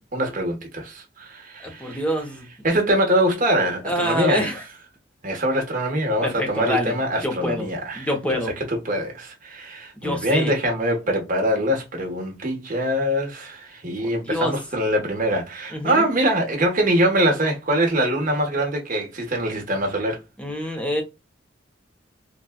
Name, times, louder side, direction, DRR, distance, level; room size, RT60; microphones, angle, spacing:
voice 1, 0.0-2.0 2.6-4.5 5.2-20.2, right 1 dB, 45° right, 1.1 m, -23 dB
voice 2, 1.6-2.4 3.8-4.6 6.2-6.9 7.2-8.5 10.0-10.5 14.0-14.5 15.7-16.0 20.4-21.0, left 1 dB, 5° left, 0.7 m, -26 dB
3.9 x 2.3 x 2.2 m
head